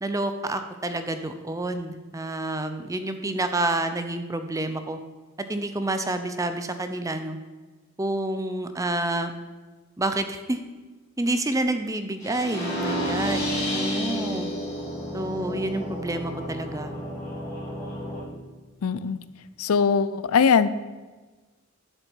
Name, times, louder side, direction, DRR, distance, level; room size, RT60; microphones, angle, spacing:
voice 1, 0.0-5.0 5.5-7.4 8.0-9.3 10.0-10.6 11.2-14.5 15.1-16.9, right 2 dB, 15° right, 9 dB, 0.5 m, -28 dB
sound 1, 12.2-18.2, equal, 15° left, 3.6 m, -30 dB
voice 2, 18.8-19.2 19.6-20.7, left 6 dB, 80° left, 15 dB, 0.5 m, -21 dB
11.0 x 6.6 x 4.6 m, 1.3 s
head